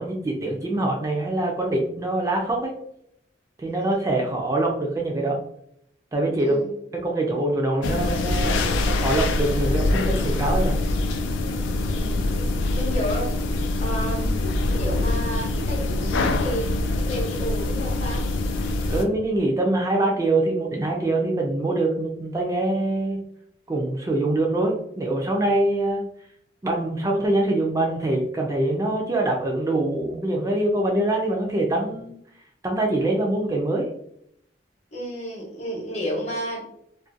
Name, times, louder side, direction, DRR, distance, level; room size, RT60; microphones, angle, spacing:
voice 1, 0.0-2.7 3.6-5.4 6.1-6.6 6.9-8.6 8.9-10.8 18.9-23.2 23.7-26.0 26.6-32.2 32.6-33.9, right 2 dB, 20° right, 0 dB, 0.3 m, -24 dB
voice 2, 6.4-6.8 11.9-12.3 12.7-13.3 13.8-18.3 34.9-36.6, equal, 35° left, -2 dB, 0.8 m, -31 dB
sound 1, 7.8-19.1, left 2 dB, 85° left, 0.3 m, -24 dB
2.4 x 2.1 x 2.6 m, 0.72 s
head